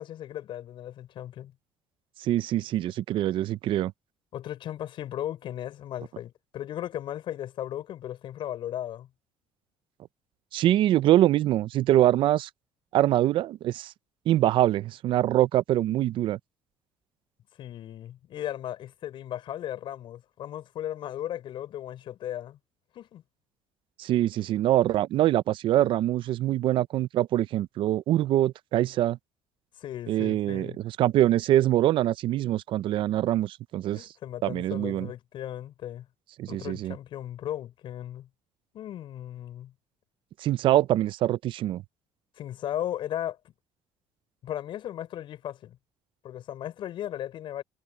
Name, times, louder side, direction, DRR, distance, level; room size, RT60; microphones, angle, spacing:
voice 1, 0.0-1.5 4.3-9.1 17.6-22.6 22.9-23.2 29.8-30.8 33.9-36.1 36.5-38.3 38.7-39.7 42.4-43.4 44.4-45.8 46.2-47.6, left 11 dB, 60° left, 6.0 m, -36 dB
voice 2, 2.2-3.9 10.5-12.5 12.9-13.9 14.3-16.4 24.0-29.2 30.1-34.1 34.4-35.1 36.4-36.9 40.4-41.8, right 13 dB, 60° right, 0.5 m, -24 dB
cardioid pair, 110°, 10 cm